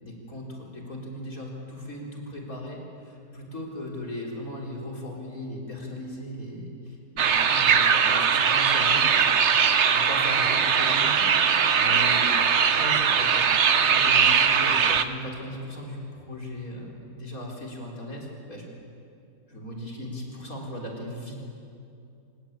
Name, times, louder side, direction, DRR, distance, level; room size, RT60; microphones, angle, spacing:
voice 1, 0.0-9.1 9.9-11.3 11.7-12.3 12.7-13.5 13.8-18.7 19.5-21.4, equal, 55° left, -1 dB, 4.7 m, -37 dB
sound 1, 7.2-15.0, right 6 dB, 50° right, 1.1 m, -21 dB
26.0 x 20.5 x 8.9 m, 2.6 s
omnidirectional pair, 1.8 m